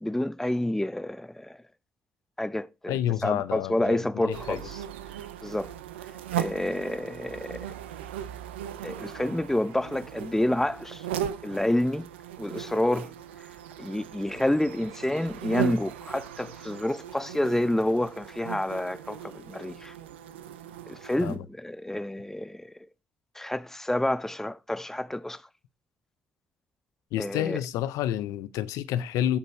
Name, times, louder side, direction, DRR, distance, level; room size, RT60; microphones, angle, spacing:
voice 1, 0.0-1.6 2.4-4.6 5.4-5.7 6.4-7.7 8.8-11.1 11.4-12.1 12.4-13.1 13.8-19.9 20.9-22.7 23.4-25.4 27.2-27.6, left 1 dB, 5° left, 0.6 m, -28 dB
voice 2, 2.9-4.6 21.2-21.4 27.1-29.4, left 12 dB, 75° left, 0.6 m, -29 dB
sound 1, 4.3-21.4, right 10 dB, 90° right, 0.6 m, -38 dB
14.0 x 5.2 x 4.3 m
hypercardioid pair, 45°, 6 cm